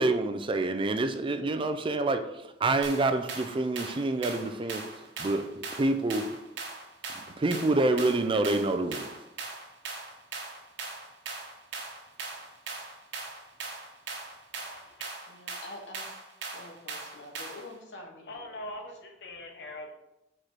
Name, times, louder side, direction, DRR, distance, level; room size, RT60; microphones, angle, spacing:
voice 1, 0.0-6.3 7.4-9.1, right 2 dB, 30° right, 0.4 m, -27 dB
sound 1, 2.8-17.7, right 3 dB, 85° right, 1.1 m, -40 dB
voice 2, 14.6-15.1 18.3-19.9, left 1 dB, 65° left, 1.0 m, -42 dB
voice 3, 15.3-16.1 16.5-18.6, left 2 dB, 85° left, 1.2 m, -46 dB
4.9 x 4.3 x 4.6 m
head